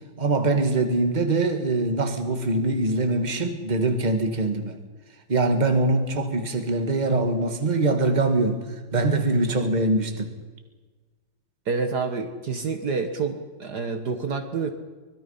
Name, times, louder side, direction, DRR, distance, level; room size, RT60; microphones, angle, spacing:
voice 1, 0.2-4.8 5.3-8.6 8.9-10.3, right 2 dB, 20° right, 1.9 m, -23 dB
voice 2, 11.7-14.7, right 4 dB, 55° right, 1.9 m, -28 dB
25.0 x 21.0 x 5.7 m
omnidirectional pair, 2.1 m